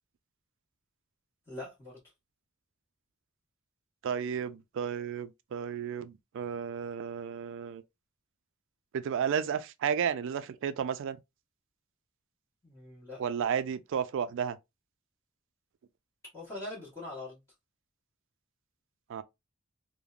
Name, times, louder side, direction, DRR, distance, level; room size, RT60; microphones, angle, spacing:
voice 1, 1.5-1.9 12.6-13.2 16.3-17.4, left 2 dB, 15° left, 1.1 m, -42 dB
voice 2, 4.0-7.8 8.9-11.2 13.2-14.6 19.1-19.2, right 7 dB, 65° right, 0.3 m, -32 dB
3.2 x 2.1 x 2.4 m
head